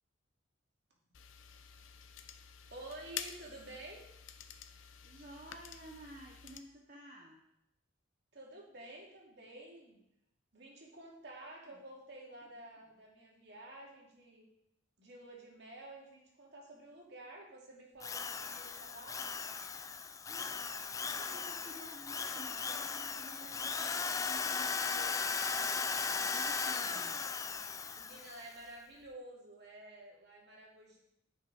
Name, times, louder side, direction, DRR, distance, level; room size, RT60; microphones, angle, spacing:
sound 1, 1.1-6.6, left 8 dB, 85° left, 0.7 m, -49 dB
voice 1, 2.7-4.0 8.3-10.0 10.5-14.5 15.0-19.3 27.9-31.0, right 1 dB, 60° right, -2 dB, 2.6 m, -51 dB
voice 2, 5.0-7.4 11.7-11.8 20.3-27.2, right 1 dB, 40° right, -1 dB, 1.0 m, -53 dB
Drill, 18.0-28.4, left 5 dB, 15° left, 0.3 m, -37 dB
9.4 x 6.1 x 5.0 m, 0.82 s
head